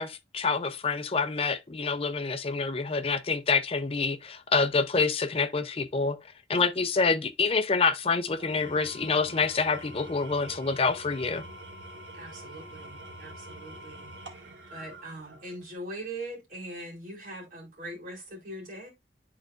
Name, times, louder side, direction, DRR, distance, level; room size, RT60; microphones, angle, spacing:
voice 1, 0.0-6.2 6.5-11.4, left 4 dB, 35° left, 0.6 m, -27 dB
Engine / Tools, 8.3-15.7, right 1 dB, 85° right, 1.5 m, -45 dB
voice 2, 12.1-14.1 14.7-18.9, right 1 dB, 45° right, 2.5 m, -41 dB
10.5 x 3.9 x 2.5 m
head